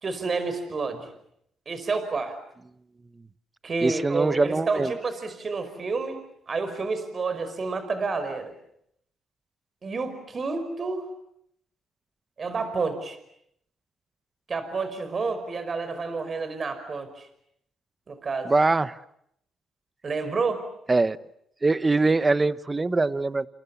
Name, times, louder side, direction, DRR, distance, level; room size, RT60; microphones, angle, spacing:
voice 1, 0.0-1.1 1.7-2.4 3.6-6.2 6.5-8.5 9.8-11.1 12.4-13.2 14.5-17.3 18.1-18.5 20.0-20.6, right 4 dB, 40° right, 10 dB, 5.2 m, -29 dB
voice 2, 3.8-4.9 18.4-19.0 20.9-21.2 21.6-23.5, right 3 dB, 25° right, 14 dB, 1.1 m, -23 dB
29.5 x 28.0 x 7.1 m, 0.74 s
cardioid pair, 90°, 0 cm